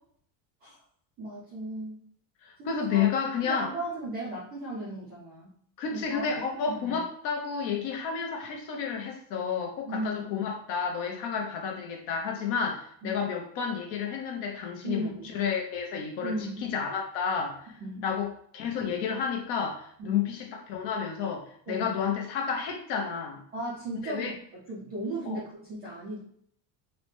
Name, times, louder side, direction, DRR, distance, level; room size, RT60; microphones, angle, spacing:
voice 1, 1.2-2.0 2.6-3.2 3.4-5.5 5.9-7.0 9.9-10.3 13.0-13.2 14.8-15.3 16.2-16.7 17.8-18.1 20.0-20.3 21.7-21.9 23.5-26.2, right 1 dB, 25° right, -7 dB, 0.3 m, -36 dB
voice 2, 2.4-3.7 5.8-16.3 16.6-17.7 18.0-23.4 24.0-24.3 25.2-25.4, left 6 dB, 55° left, 2 dB, 0.8 m, -31 dB
4.0 x 2.1 x 3.1 m, 0.64 s
cardioid pair, 175°, 49 cm